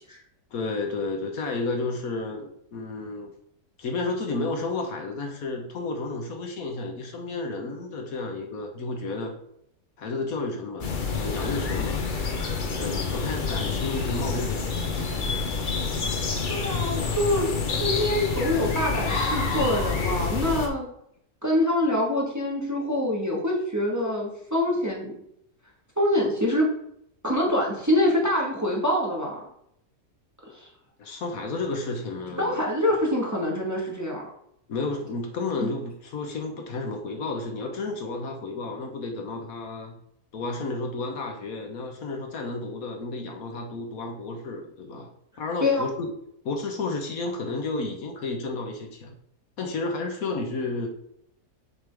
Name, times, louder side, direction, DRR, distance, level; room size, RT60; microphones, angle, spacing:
voice 1, 0.5-3.3 3.8-9.3 10.0-10.9 11.2-12.1 12.6-14.8 31.0-32.7 34.7-40.0 40.3-45.1 45.4-46.1 46.4-49.1 49.6-50.9, left 3 dB, 70° left, 3 dB, 1.4 m, -32 dB
sound 1, 10.8-20.7, left 4 dB, 40° left, 0.8 m, -28 dB
voice 2, 16.5-20.9 21.4-25.1 26.0-26.7 27.2-29.4 30.5-30.7 32.4-34.2 35.6-35.7 45.6-45.8, left 1 dB, 10° right, -3 dB, 1.4 m, -25 dB
7.0 x 5.2 x 3.4 m, 0.74 s
omnidirectional pair, 1.6 m